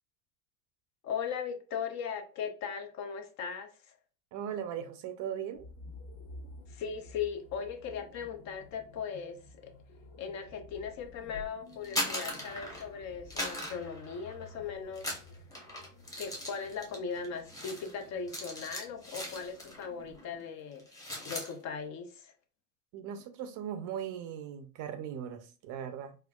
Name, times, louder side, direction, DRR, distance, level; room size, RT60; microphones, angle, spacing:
voice 1, 1.0-3.7 6.7-9.8 10.2-15.2 16.2-20.8 21.2-22.3, left 6 dB, 40° left, 0.5 m, -38 dB
voice 2, 4.3-5.7 22.9-26.2, right 9 dB, 45° right, 0.5 m, -38 dB
sound 1, 5.5-20.3, left 2 dB, 65° left, 1.1 m, -53 dB
sound 2, 11.7-13.0 13.3-14.6 14.9-19.9 20.2-20.4 20.7-21.5, equal, 10° left, 0.8 m, -39 dB
4.3 x 2.4 x 2.2 m
supercardioid pair, 135°, 45 cm